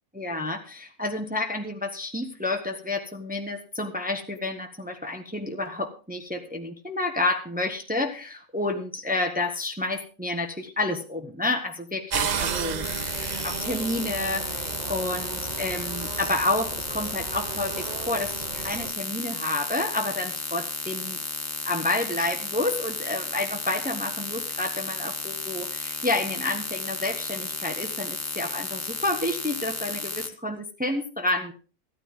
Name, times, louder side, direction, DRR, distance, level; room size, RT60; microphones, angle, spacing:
voice 1, 0.1-12.9 13.2-21.2 21.6-31.5, left 2 dB, 5° right, 4 dB, 1.4 m, -30 dB
sound 1, 12.1-18.9, right 7 dB, 45° right, 0.5 m, -33 dB
sound 2, 12.8-30.3, left 2 dB, 10° left, 0.9 m, -33 dB
14.5 x 13.0 x 3.8 m, 0.36 s
omnidirectional pair, 1.5 m